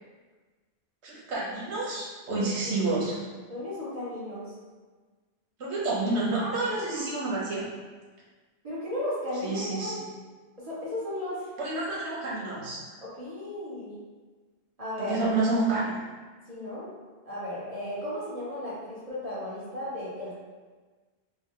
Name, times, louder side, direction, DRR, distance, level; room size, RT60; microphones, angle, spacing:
voice 1, 1.0-3.2 5.6-7.6 9.4-10.0 11.6-12.8 15.0-15.9, right 2 dB, 80° right, -5 dB, 1.3 m, -29 dB
voice 2, 2.4-2.8 3.5-4.5 6.4-6.5 8.6-10.0 10.6-11.4 13.0-14.0 14.8-15.2 16.5-16.9 17.2-20.3, left 1 dB, 35° right, -9 dB, 1.3 m, -35 dB
3.9 x 2.2 x 3.7 m, 1.4 s
omnidirectional pair, 1.1 m